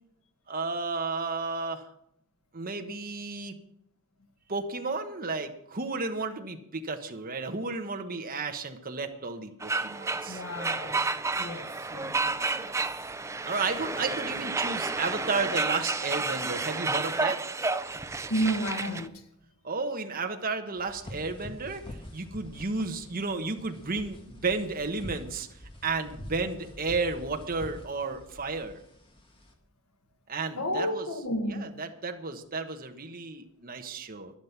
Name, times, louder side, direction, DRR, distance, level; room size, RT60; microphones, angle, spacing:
voice 1, 0.5-1.9 2.5-3.5 4.5-10.4 13.5-17.4 19.6-28.8 30.3-31.1 31.5-34.3, right 3 dB, 40° right, 1.2 m, -33 dB
sound 1, 9.6-19.1, right 3 dB, 15° right, 0.4 m, -31 dB
voice 2, 10.3-11.0 11.4-12.7 18.3-19.1 30.5-31.7, equal, 90° left, 1.5 m, -32 dB
sound 2, 20.8-29.5, equal, 25° left, 1.9 m, -46 dB
11.5 x 11.5 x 5.9 m
head